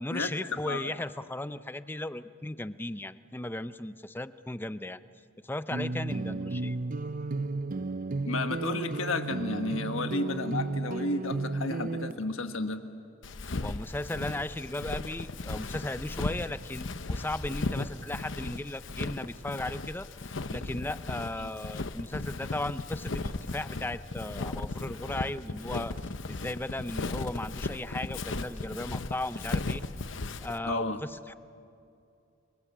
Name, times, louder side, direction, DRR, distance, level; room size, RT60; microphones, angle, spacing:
voice 1, 0.0-5.0 5.4-6.8 13.6-20.1 20.5-25.9 26.3-29.8 30.4-31.3, left 1 dB, 10° left, 12 dB, 0.6 m, -36 dB
sound 1, 5.7-12.1, right 3 dB, 40° right, 0.6 m, -33 dB
voice 2, 8.2-12.9 21.4-21.5 30.6-31.0, left 2 dB, 80° left, 7 dB, 1.5 m, -32 dB
Walk footsteps, 13.2-30.6, left 3 dB, 65° left, 0.9 m, -36 dB
29.5 x 23.5 x 7.4 m, 2.6 s
head